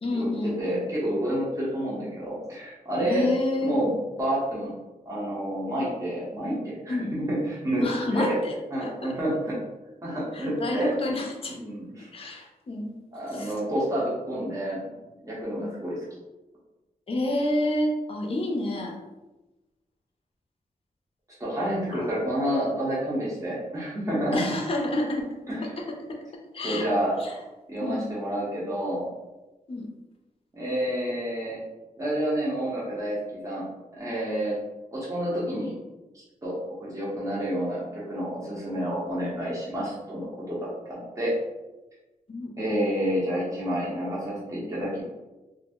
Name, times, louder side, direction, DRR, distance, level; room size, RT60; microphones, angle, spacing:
voice 1, 0.0-0.9 3.0-3.7 6.9-7.1 7.8-8.5 8.8-9.1 10.3-11.6 12.1-12.9 13.3-13.5 15.5-15.7 17.1-19.0 21.9-22.1 24.3-25.3 25.6-25.8 26.1-26.2 26.5-26.9 27.2-27.4 27.8-28.1 29.7-29.9 42.3-42.5, left 1 dB, 40° left, 1 dB, 0.5 m, -29 dB
voice 2, 0.6-3.3 3.6-3.9 4.2-4.7 5.1-7.8 8.1-8.4 8.7-9.5 10.0-10.9 11.5-12.3 13.1-14.9 15.2-16.0 21.4-24.4 25.5-25.6 26.6-27.2 27.7-29.1 30.5-31.6 32.0-33.7 33.9-34.6 34.9-35.7 36.1-41.3 42.6-45.0, right 1 dB, 20° right, -7 dB, 0.7 m, -29 dB
2.5 x 2.0 x 3.4 m, 1.1 s
wide cardioid pair, 155°, 15 cm